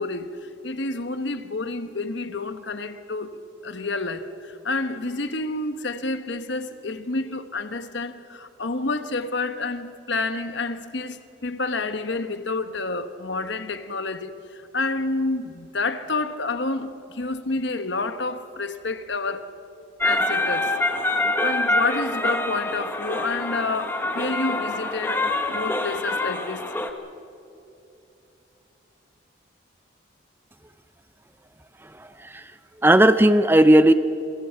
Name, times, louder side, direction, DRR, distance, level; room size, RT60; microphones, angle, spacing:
voice 1, 0.0-3.3 3.6-19.5 20.0-20.7 21.4-25.2 25.5-26.7, left 3 dB, 60° left, 1.1 m, -29 dB
sound 1, 20.0-26.9, left 2 dB, 10° left, 1.1 m, -25 dB
voice 2, 31.8-33.9, right 1 dB, 10° right, 0.5 m, -17 dB
27.0 x 23.5 x 5.7 m
head